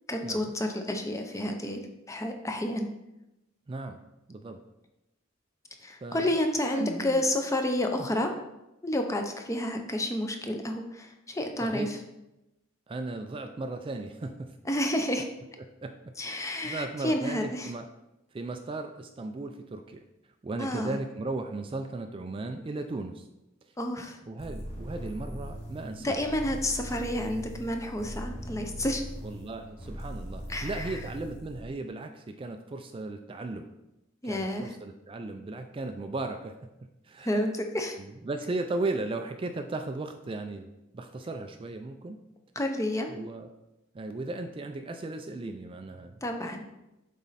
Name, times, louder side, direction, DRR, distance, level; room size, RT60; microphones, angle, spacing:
voice 1, 0.1-1.8 2.1-2.9 5.8-8.3 8.8-12.0 14.7-15.3 16.2-17.7 20.6-21.0 23.8-24.2 26.0-29.0 30.5-31.0 34.2-34.7 37.2-38.0 42.6-43.1 46.2-46.6, left 1 dB, 15° left, 4 dB, 0.6 m, -30 dB
voice 2, 3.7-4.0 4.3-4.6 6.0-6.4 6.7-7.3 11.6-11.9 12.9-14.6 15.8-15.9 16.3-17.8 18.3-20.0 20.4-23.3 24.3-26.2 29.2-33.7 34.2-36.6 37.0-37.4 38.0-42.2 43.1-43.5 43.9-46.2, right 2 dB, 25° right, 6 dB, 0.3 m, -36 dB
Bass sci-fi sound spaceship., 24.4-31.6, equal, 35° left, 1.6 m, -40 dB
7.1 x 4.2 x 4.1 m, 0.93 s
head